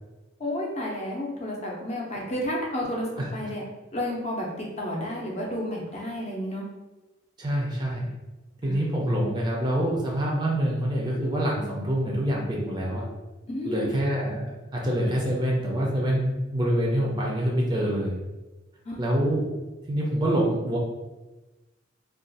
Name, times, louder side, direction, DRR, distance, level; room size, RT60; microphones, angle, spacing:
voice 1, 0.4-3.6 3.9-6.6 8.6-8.8 13.5-13.9 18.8-19.0, left 1 dB, 30° left, -3 dB, 0.6 m, -31 dB
voice 2, 7.4-8.1 8.6-13.1 13.7-18.1 19.0-19.5 19.9-20.8, right 1 dB, 20° right, -3 dB, 0.5 m, -26 dB
2.5 x 2.3 x 3.9 m, 1.1 s
head